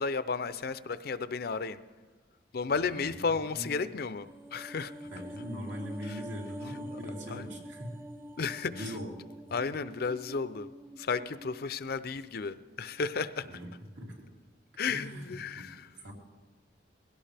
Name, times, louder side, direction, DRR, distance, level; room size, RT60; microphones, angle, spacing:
voice 1, 0.0-1.8 2.5-5.1 6.1-6.2 6.9-7.0 7.3-7.5 8.4-8.9 9.5-10.7 11.0-13.5 14.8-15.9, left 5 dB, 55° left, 13 dB, 0.6 m, -33 dB
voice 2, 2.7-3.2 3.5-3.7 5.0-8.0 8.7-9.1 13.4-13.7 13.9-14.3 14.9-15.7 16.0-16.1, equal, 75° right, -2 dB, 3.4 m, -41 dB
sound 1, 4.2-12.6 12.9-13.0, equal, 15° right, 0.4 m, -46 dB
21.0 x 17.0 x 3.4 m, 1.3 s
head